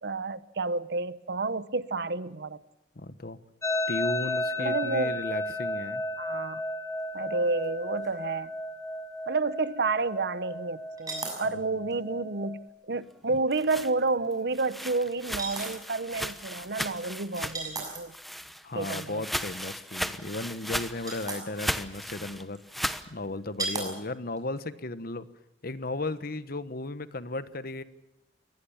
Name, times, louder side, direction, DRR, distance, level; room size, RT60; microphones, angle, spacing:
voice 1, 0.0-2.6 4.6-5.2 6.2-6.6 7.1-8.5 9.3-12.6 12.9-18.1 18.7-19.2, right 3 dB, 65° right, 1.0 m, -30 dB
voice 2, 2.9-3.4 3.9-6.0 11.5-11.6 18.6-22.6 23.1-25.3 25.6-27.8, left 2 dB, 55° left, 1.3 m, -35 dB
sound 1, 3.6-12.7, left 1 dB, 15° left, 1.9 m, -34 dB
sound 2, 7.6-7.7 8.0-8.1 11.0-11.5 11.9-12.0 13.7-13.9 15.4-15.8 17.4-18.2 20.4-20.5 20.8-21.4 22.5-22.6 23.6-23.9 24.4-24.6, right 3 dB, 20° right, 6.6 m, -35 dB
sound 3, 13.3-17.8 18.1-23.1, equal, ahead, 1.0 m, -36 dB
23.5 x 19.5 x 7.2 m
head